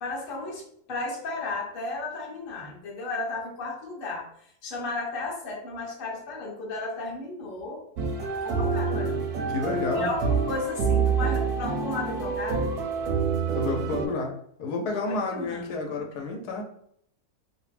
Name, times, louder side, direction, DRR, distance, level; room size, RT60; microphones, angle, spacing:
voice 1, 0.0-7.8 8.3-9.3 9.9-12.7 14.9-15.7, left 3 dB, 45° left, -2 dB, 0.8 m, -34 dB
sound 1, 8.0-14.1, right 5 dB, 85° right, 1.1 m, -27 dB
voice 2, 9.5-10.1 13.5-14.3 14.6-16.6, left 3 dB, 90° left, 2 dB, 1.2 m, -30 dB
3.0 x 2.1 x 3.2 m, 0.69 s
omnidirectional pair, 1.6 m